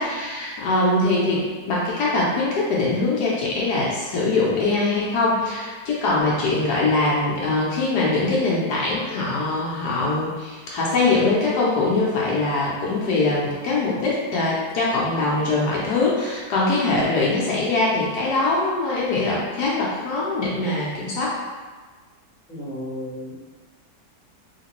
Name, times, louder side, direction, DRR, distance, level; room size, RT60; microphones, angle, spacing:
voice 1, 0.0-21.4, left 2 dB, 70° left, -5 dB, 1.2 m, -22 dB
voice 2, 22.5-23.4, left 1 dB, 5° left, -10 dB, 0.9 m, -33 dB
3.2 x 2.8 x 3.0 m, 1.4 s
omnidirectional pair, 1.9 m